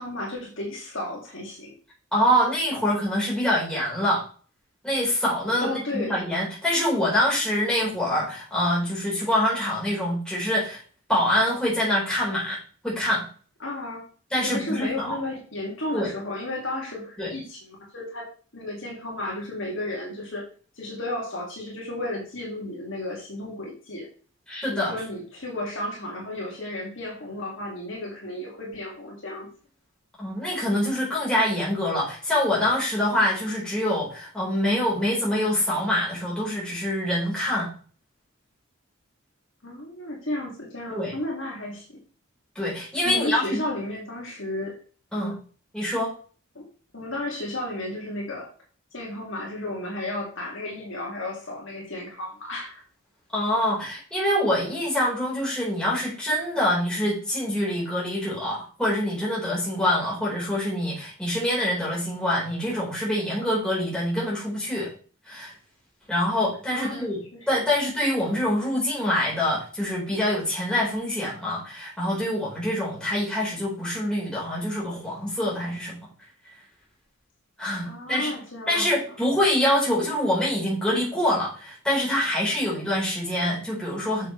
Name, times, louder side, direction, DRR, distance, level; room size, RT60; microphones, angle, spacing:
voice 1, 0.0-1.7 5.6-6.1 13.6-14.1 14.4-18.3 18.5-20.4 20.8-24.1 24.7-29.5 39.6-42.0 43.0-44.8 45.1-45.4 46.5-46.6 46.9-48.5 48.9-52.7 66.7-67.0 67.3-67.5 77.8-79.2, left 1 dB, 60° left, -2 dB, 2.7 m, -33 dB
voice 2, 2.1-4.2 4.8-10.8 11.1-12.6 12.8-13.3 14.3-15.2 15.9-16.1 17.2-17.3 24.5-24.9 30.2-37.7 40.9-41.1 42.5-43.6 45.1-45.3 45.7-46.1 53.3-64.9 65.2-65.5 66.1-67.2 67.5-76.0 77.6-78.3 78.7-84.3, left 1 dB, 5° left, -6 dB, 4.9 m, -25 dB
9.6 x 7.0 x 3.4 m, 0.40 s
head